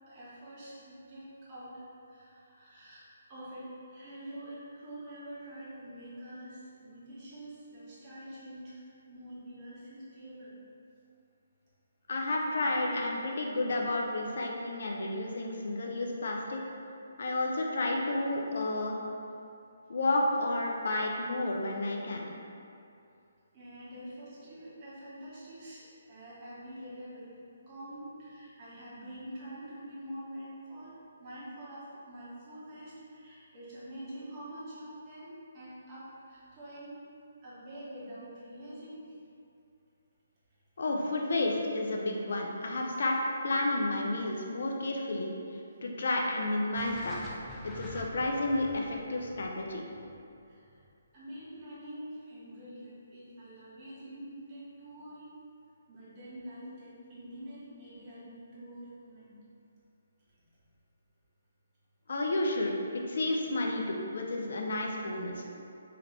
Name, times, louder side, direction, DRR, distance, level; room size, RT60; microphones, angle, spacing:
voice 1, 0.1-1.8 2.1-8.8 9.1-10.6 21.6-21.7 23.5-27.4 27.7-37.0 37.4-39.2 50.5-50.7 51.1-55.3 55.9-59.4, right 1 dB, 30° right, -9 dB, 1.3 m, -46 dB
voice 2, 12.1-16.6 17.2-19.0 19.9-22.4 40.8-45.3 45.8-47.2 47.6-49.8 62.1-65.4, left 2 dB, 60° left, 0 dB, 0.5 m, -31 dB
sound 1, 46.8-50.9, equal, 10° left, 0.5 m, -47 dB
3.8 x 3.0 x 3.3 m, 2.6 s
figure-of-eight pair, 140°, 0 cm